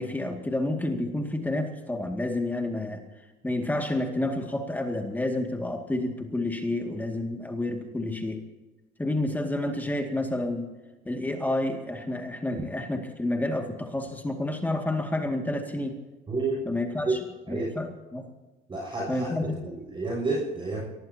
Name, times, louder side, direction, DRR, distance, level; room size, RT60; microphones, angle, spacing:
voice 1, 0.0-3.0 3.4-8.4 9.0-10.7 11.1-16.0 16.7-17.2 17.5-18.3 19.1-19.6, left 1 dB, 10° left, 3 dB, 2.2 m, -29 dB
voice 2, 16.3-16.6 17.0-17.2 17.5-17.7 18.7-20.8, right 3 dB, 30° right, -2 dB, 6.6 m, -30 dB
23.5 x 18.5 x 2.9 m, 1.1 s
cardioid pair, 110°, 17 cm